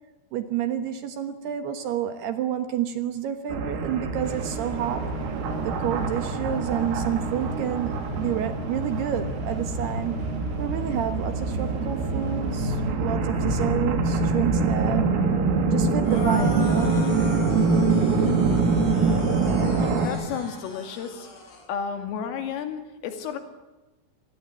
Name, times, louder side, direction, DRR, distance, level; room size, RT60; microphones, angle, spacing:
voice 1, 0.3-5.1 5.6-10.2 10.6-15.1 15.7-17.2, right 10 dB, 65° right, 8 dB, 2.9 m, -29 dB
sound 1, 3.5-20.1, right 3 dB, 85° right, 5.6 m, -25 dB
sound 2, 4.2-12.9, right 2 dB, 45° right, 7.9 m, -46 dB
sound 3, 16.0-21.7, left 2 dB, 30° left, 4.3 m, -40 dB
voice 2, 19.8-21.3 21.7-23.4, left 7 dB, 80° left, 6 dB, 5.1 m, -32 dB
25.5 x 21.0 x 8.5 m, 1.1 s
omnidirectional pair, 5.8 m